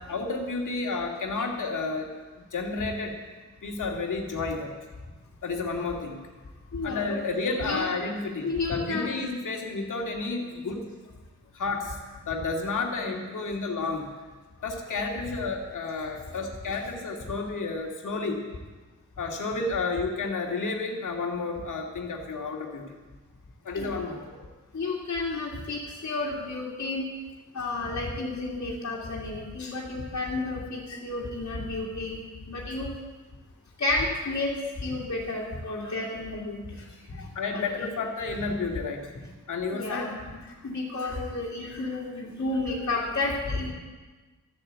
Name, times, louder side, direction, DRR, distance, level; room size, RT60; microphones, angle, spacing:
voice 1, 0.1-2.1 2.4-3.2 3.6-4.7 5.4-6.2 6.8-10.8 11.5-12.0 12.2-14.1 14.6-18.4 19.2-23.0 23.6-24.4 37.3-39.1 39.5-40.0, left 3 dB, 75° left, 1 dB, 2.3 m, -31 dB
voice 2, 6.7-7.2 7.6-7.8 8.4-9.3 10.5-10.7 23.7-23.9 24.7-27.1 27.5-32.2 32.5-32.9 33.8-34.5 34.8-37.3 37.5-37.9 39.7-43.7, left 2 dB, 55° left, -6 dB, 2.5 m, -31 dB
13.5 x 8.0 x 8.2 m, 1.3 s
wide cardioid pair, 110°, 31 cm